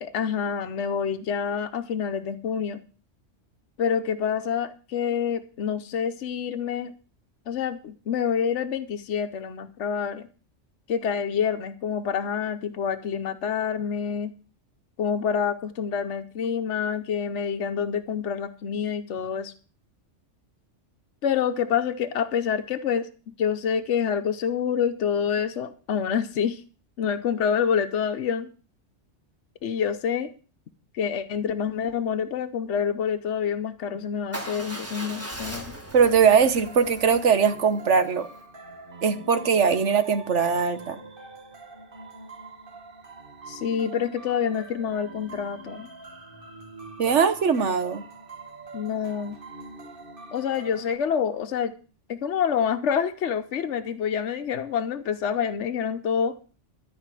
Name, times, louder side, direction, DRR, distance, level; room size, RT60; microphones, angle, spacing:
voice 1, 0.0-2.8 3.8-6.9 7.5-10.3 10.9-14.3 15.0-19.5 21.2-23.1 23.4-26.6 27.0-28.5 29.6-30.3 30.9-35.7 43.5-45.9 48.7-49.4 50.3-51.7 52.1-56.3, left 7 dB, 70° left, 7 dB, 1.1 m, -27 dB
Motorcycle / Engine starting / Idling, 34.3-38.4, right 1 dB, 10° right, 1.6 m, -39 dB
voice 2, 35.9-38.3 39.0-41.0 47.0-48.0, right 6 dB, 70° right, 11 dB, 1.4 m, -21 dB
sound 1, 36.6-51.0, right 3 dB, 45° right, 1.9 m, -44 dB
13.0 x 5.2 x 9.1 m, 0.38 s
omnidirectional pair, 1.3 m